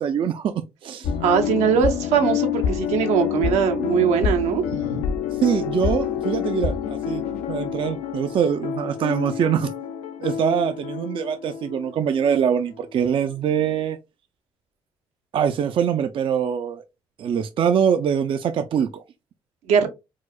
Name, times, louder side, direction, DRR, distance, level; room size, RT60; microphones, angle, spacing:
voice 1, 0.0-1.1 5.3-7.2 7.5-9.7 10.2-14.0 15.3-16.8 17.2-19.0, right 8 dB, 50° right, 0.4 m, -23 dB
sound 1, 1.0-12.5 12.7-12.8, left 8 dB, 85° left, 0.5 m, -27 dB
voice 2, 1.2-5.0 19.7-19.9, right 7 dB, 85° right, 0.7 m, -21 dB
4.6 x 2.0 x 2.3 m
supercardioid pair, 65°, 11 cm